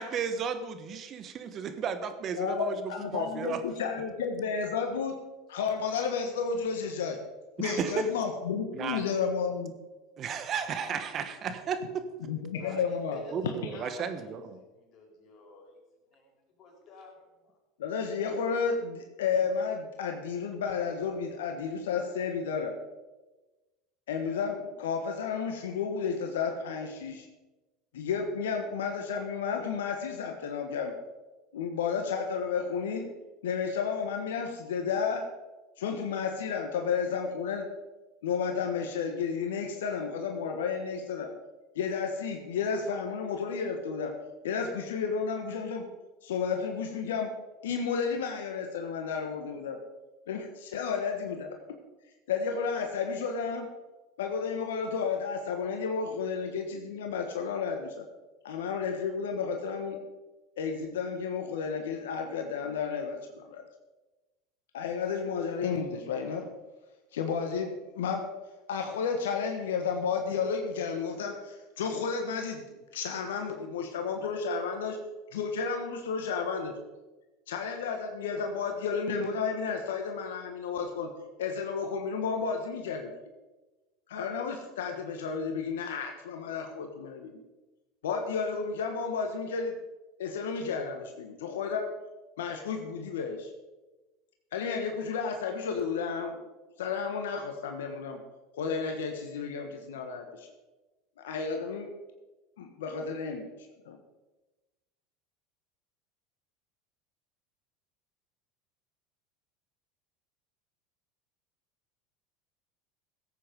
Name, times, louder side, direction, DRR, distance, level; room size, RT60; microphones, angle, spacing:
voice 1, 0.0-3.6 7.6-8.1 8.7-9.0 10.2-12.0 13.3-14.6, right 6 dB, 40° right, 10 dB, 1.3 m, -34 dB
voice 2, 2.4-5.2 5.5-7.2 7.6-9.7 12.2-13.5 17.8-22.7 24.1-27.3 27.9-30.9 31.5-33.1 33.4-35.3 35.8-37.6 38.2-41.3 41.7-44.1 44.4-45.8 46.2-47.3 47.6-49.8 50.3-51.5 52.3-53.7 54.2-58.0 58.4-60.0 60.6-63.6 64.7-66.4 67.1-68.2 68.7-72.6 72.9-75.0 75.3-76.7 77.5-81.1 81.4-83.1 84.1-87.4 88.0-89.7 90.2-91.9 92.4-93.5 94.5-96.4 96.8-98.2 98.5-100.5 101.2-101.9 102.6-103.5 103.8-104.0, left 5 dB, 80° left, 4 dB, 1.4 m, -32 dB
voice 3, 12.5-15.8 16.1-16.3 16.6-17.6, left 2 dB, 45° left, 0 dB, 4.8 m, -50 dB
15.5 x 8.5 x 5.2 m, 1.1 s
hypercardioid pair, 85°, 0 cm